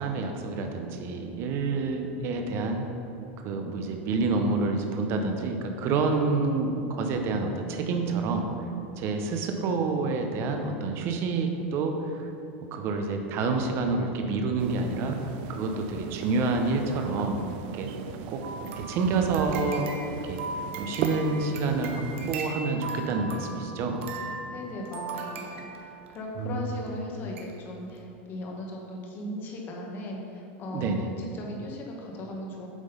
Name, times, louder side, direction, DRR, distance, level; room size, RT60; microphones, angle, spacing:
voice 1, 0.0-2.8 3.4-8.5 9.0-12.3 12.7-15.2 15.5-17.4 17.7-17.9 18.3-19.9 20.2-20.4 20.8-22.0 22.3-24.0 26.4-26.7 30.7-31.1, right 3 dB, 40° right, 4 dB, 0.8 m, -28 dB
sound 1, 14.6-22.4, right 7 dB, 55° right, 0.4 m, -38 dB
sound 2, 18.4-26.2 26.9-27.0 27.4-27.5 27.9-28.0, right 3 dB, 85° right, 1.0 m, -39 dB
voice 2, 24.5-32.7, left 1 dB, 30° left, 0 dB, 1.2 m, -38 dB
8.1 x 3.8 x 5.3 m, 2.8 s
supercardioid pair, 150°, 7 cm